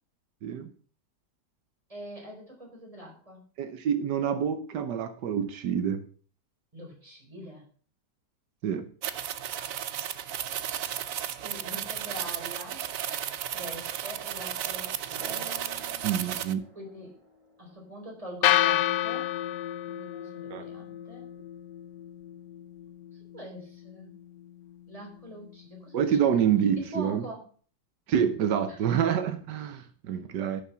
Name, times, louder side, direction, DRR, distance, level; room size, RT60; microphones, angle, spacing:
voice 1, 1.9-3.4 6.7-7.6 11.4-12.8 13.5-15.5 16.7-17.2 17.6-19.3 19.9-21.3 23.3-24.1 24.9-26.0 26.8-27.4 28.7-28.9, equal, 20° right, -1 dB, 4.4 m, -43 dB
voice 2, 3.6-6.0 8.6-8.9 16.0-16.6 20.5-20.7 25.9-27.2 28.1-30.6, right 8 dB, 85° right, 9 dB, 1.5 m, -27 dB
sound 1, 9.0-16.5, right 10 dB, 60° right, 1.0 m, -34 dB
sound 2, 15.2-19.1, right 1 dB, 15° left, 5.4 m, -50 dB
sound 3, 18.4-26.6, left 13 dB, 85° left, 1.3 m, -32 dB
11.0 x 7.1 x 5.7 m, 0.44 s
omnidirectional pair, 1.8 m